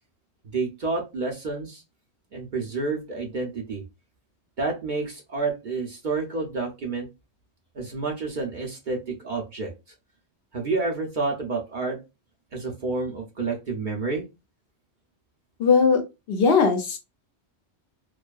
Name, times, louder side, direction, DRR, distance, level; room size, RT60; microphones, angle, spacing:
voice 1, 0.5-1.8 2.3-3.8 4.6-7.1 7.7-9.7 10.5-12.0 12.5-14.2, right 3 dB, 50° right, 0 dB, 0.7 m, -29 dB
voice 2, 15.6-16.0 16.3-17.0, left 5 dB, 65° left, 5 dB, 0.7 m, -19 dB
2.6 x 2.3 x 2.2 m, 0.25 s
omnidirectional pair, 1.2 m